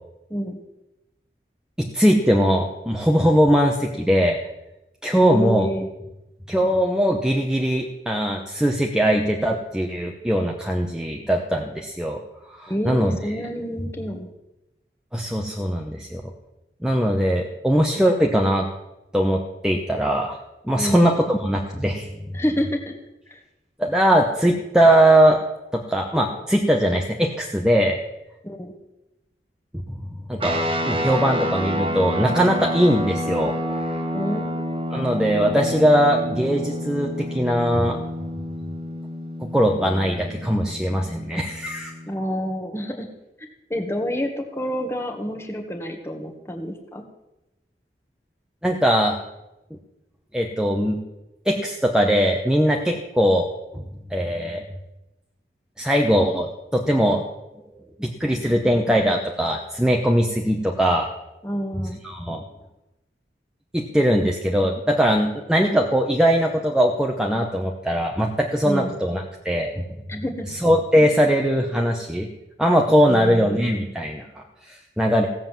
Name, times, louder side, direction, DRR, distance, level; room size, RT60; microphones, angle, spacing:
voice 1, 0.3-0.6 5.1-5.9 12.7-14.3 20.8-21.1 22.3-22.9 23.3-23.4 28.4-28.7 34.1-34.5 42.1-43.1 43.7-47.0 61.4-62.0 68.6-68.9 70.1-70.5 73.1-73.7, equal, 15° left, 3 dB, 1.6 m, -28 dB
voice 2, 1.8-4.4 5.0-5.7 6.5-12.2 12.5-13.2 15.1-16.2 16.8-18.7 19.1-22.1 23.8-25.4 25.7-28.0 29.9-30.0 30.3-34.0 34.9-38.0 39.4-41.9 48.6-49.2 49.7-49.8 50.3-51.0 51.4-53.5 53.7-53.8 54.1-54.6 55.8-57.2 57.7-61.1 62.0-62.4 63.7-69.8 70.5-72.3 72.6-75.3, equal, 5° right, 0 dB, 1.0 m, -20 dB
sound 1, 30.4-42.1, equal, 30° right, 1.5 m, -29 dB
16.0 x 7.6 x 7.4 m, 0.94 s
head